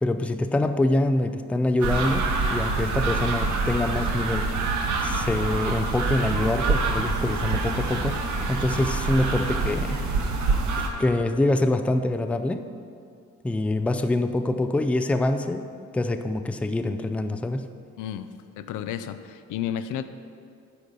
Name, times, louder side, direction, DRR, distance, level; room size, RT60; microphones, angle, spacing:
voice 1, 0.0-4.5 5.0-10.0 11.0-12.7 13.4-15.7 15.9-17.7, left 2 dB, 5° left, 8 dB, 0.3 m, -25 dB
sound 1, 1.8-10.9, right 3 dB, 70° right, 1.0 m, -26 dB
voice 2, 18.0-18.3 18.6-20.0, left 10 dB, 85° left, 11 dB, 0.5 m, -32 dB
8.9 x 5.0 x 5.3 m, 2.4 s
cardioid pair, 90°, 30 cm